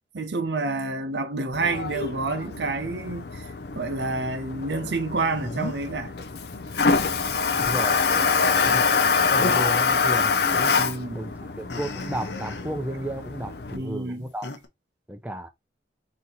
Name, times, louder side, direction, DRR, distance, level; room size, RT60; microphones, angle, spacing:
voice 1, 0.1-6.1 10.8-11.2 13.7-14.2, right 3 dB, 75° right, 0.8 m, -29 dB
Toilet flush, 1.5-13.8, left 5 dB, 65° left, 0.5 m, -25 dB
sound 1, 5.2-5.9 6.8-8.2 8.5-10.2 10.5-10.9 11.7-12.8 14.4-14.7, left 3 dB, 85° left, 0.9 m, -34 dB
voice 2, 7.6-8.7 9.2-10.7 11.1-14.5 15.1-15.5, right 1 dB, 10° right, 0.6 m, -34 dB
4.2 x 2.9 x 3.9 m
head